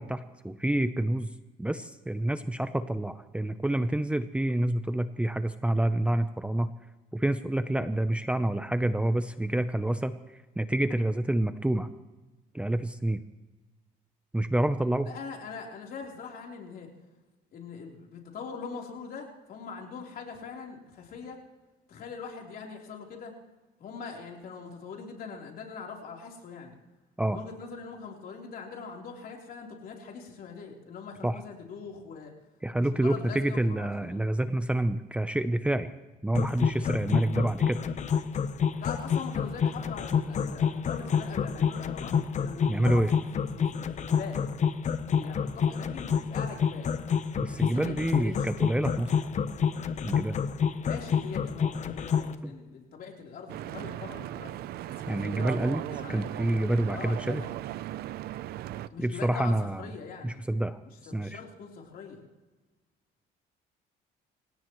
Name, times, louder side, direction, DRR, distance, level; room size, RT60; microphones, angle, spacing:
voice 1, 0.0-1.3 1.6-6.7 7.1-10.2 10.6-11.9 12.5-13.2 14.3-15.1 27.2-27.4 31.2-31.4 32.6-35.9 36.2-37.8 42.7-43.1 47.4-49.1 50.0-50.4 55.1-55.8 56.1-57.4 59.0-59.8 60.2-60.8 61.1-61.4, right 1 dB, 5° right, 10 dB, 0.7 m, -28 dB
voice 2, 15.1-16.9 17.5-21.4 21.9-23.3 23.8-26.8 27.3-32.3 32.8-34.2 38.8-44.5 45.1-46.9 47.5-48.5 50.8-54.5 55.1-56.2 56.9-57.6 58.9-60.4 60.9-62.2, left 5 dB, 60° left, 0 dB, 3.8 m, -42 dB
sound 1, 36.3-52.3, left 7 dB, 45° left, 1.0 m, -28 dB
Stream / Boat Water vehicle, 53.5-58.9, right 13 dB, 70° right, 0.6 m, -37 dB
26.5 x 17.0 x 3.2 m, 1.2 s
cardioid pair, 110°, 17 cm